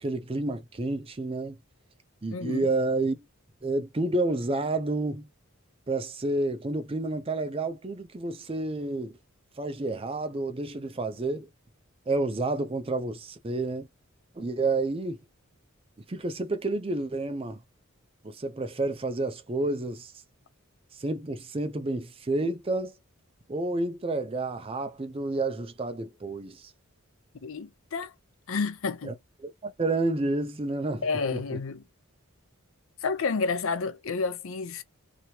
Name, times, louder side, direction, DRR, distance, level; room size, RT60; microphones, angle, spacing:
voice 1, 0.0-1.6 2.2-3.2 3.6-5.3 5.9-9.2 9.6-11.5 12.1-13.9 14.4-15.2 16.1-17.6 18.2-20.1 20.9-22.9 23.5-26.7 29.0-29.1 29.4-31.0 31.3-31.4, right 2 dB, 25° right, 0.5 m, -30 dB
voice 2, 2.3-2.7 27.4-28.1 28.5-29.1 31.0-31.8 33.0-34.8, left 4 dB, 65° left, 0.5 m, -30 dB
3.0 x 2.8 x 2.8 m
head